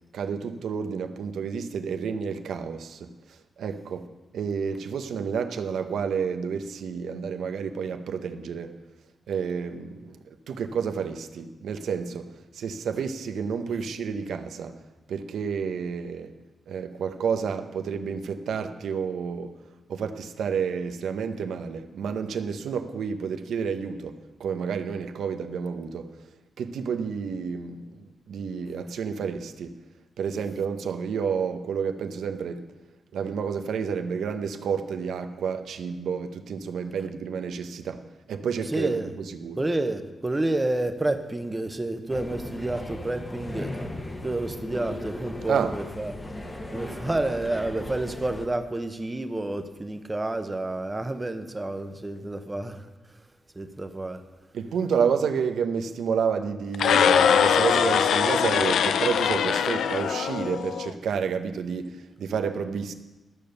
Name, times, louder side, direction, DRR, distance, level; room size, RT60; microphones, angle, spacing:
voice 1, 0.1-3.1 3.6-4.1 4.3-8.8 9.3-10.2 10.5-12.3 12.5-14.8 15.1-16.3 16.7-19.5 19.9-26.1 26.6-29.8 30.2-32.7 33.1-39.6 45.5-45.7 54.5-62.9, right 6 dB, 90° right, 0.8 m, -30 dB
voice 2, 38.7-39.1 39.6-43.8 44.2-46.2 46.7-52.9 53.5-54.2, right 2 dB, 15° right, 0.7 m, -29 dB
sound 1, 42.1-48.5, left 1 dB, 15° left, 0.9 m, -37 dB
sound 2, 56.7-60.9, left 7 dB, 85° left, 0.4 m, -22 dB
12.5 x 7.0 x 6.6 m
wide cardioid pair, 175°, 0 cm